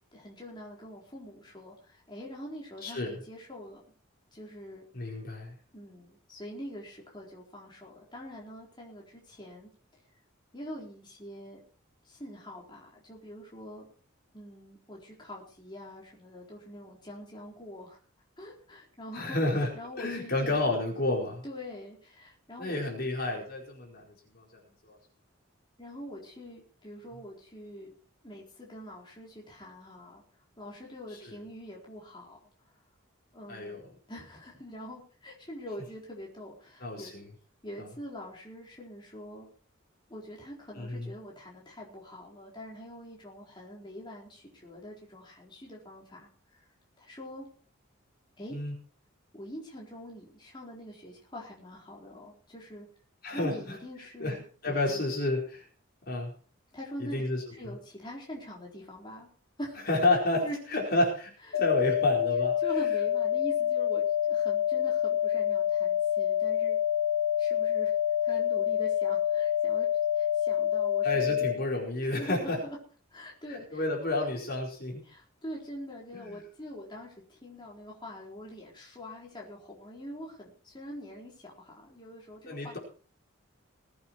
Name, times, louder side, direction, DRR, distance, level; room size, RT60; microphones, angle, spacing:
voice 1, 0.1-3.8 4.3-4.8 5.7-9.7 10.5-11.6 12.0-13.8 14.3-18.0 18.4-20.6 21.4-22.8 25.8-27.9 28.2-30.2 30.6-32.4 32.6-32.7 33.3-37.1 37.6-39.5 40.1-46.7 47.0-47.5 48.4-48.6 49.3-52.9 53.3-55.0 56.7-57.2 57.5-59.3 59.6-59.8 60.4-60.6 61.4-61.6 62.6-66.8 67.4-69.9 70.1-71.4 72.0-72.8 73.1-73.8 74.2-74.3 75.0-82.8, equal, 20° left, -3 dB, 4.1 m, -44 dB
voice 2, 2.8-3.1 4.9-5.5 19.1-19.7 20.0-21.4 22.6-24.4 24.8-25.0 31.3-31.4 33.5-33.8 36.8-37.2 40.8-41.1 48.5-48.7 53.2-53.5 54.2-54.4 54.6-55.6 56.1-56.3 57.0-57.4 59.9-60.5 60.7-62.5 71.0-72.6 73.7-75.0 76.1-76.3 82.5-82.8, left 2 dB, 50° left, -2 dB, 4.7 m, -30 dB
sound 1, 61.5-71.5, left 10 dB, 70° left, 1.7 m, -27 dB
21.0 x 8.7 x 4.7 m, 0.41 s
head